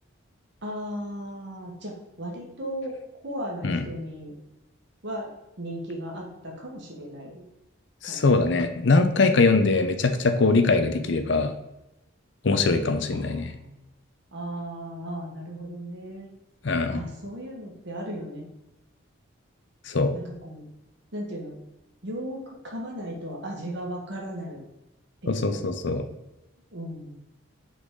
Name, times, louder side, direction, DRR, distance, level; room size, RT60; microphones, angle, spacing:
voice 1, 0.6-1.9 2.2-2.9 3.2-4.3 5.0-5.3 5.6-7.4 8.0-8.2 13.1-13.8 14.3-16.3 16.9-18.5 20.1-20.6 21.1-21.6 22.0-24.6 25.4-25.6 26.7-27.2, equal, 55° right, -1 dB, 1.6 m, -36 dB
voice 2, 8.0-11.5 12.4-13.5 16.6-17.0 19.9-20.1 25.3-26.0, left 3 dB, 55° left, 8 dB, 0.6 m, -22 dB
6.0 x 4.0 x 3.8 m, 0.94 s
head